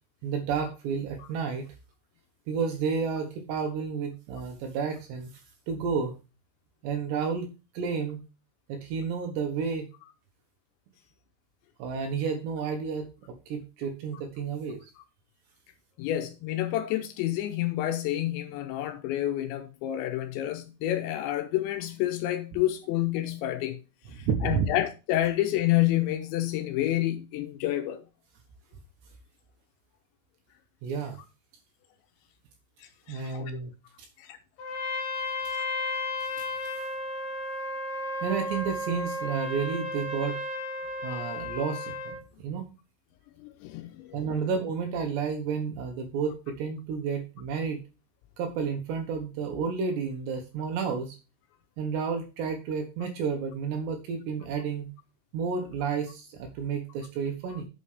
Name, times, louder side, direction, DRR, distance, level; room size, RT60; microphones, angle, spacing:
voice 1, 0.2-1.7 2.5-5.3 5.7-6.2 6.8-8.2 8.7-9.9 11.8-14.9 24.2-24.7 30.8-31.2 33.1-33.7 36.4-36.9 38.2-40.4 41.0-42.7 44.1-47.8 48.4-51.2 51.8-54.9 55.3-57.7, right 6 dB, 75° right, 2.8 m, -31 dB
voice 2, 16.0-23.8 24.2-28.0 32.8-33.6 34.2-34.4 43.4-44.2 57.5-57.6, left 14 dB, 80° left, 2.6 m, -29 dB
Trumpet, 34.6-42.2, left 2 dB, 60° left, 2.4 m, -33 dB
8.8 x 6.9 x 3.4 m
omnidirectional pair, 5.9 m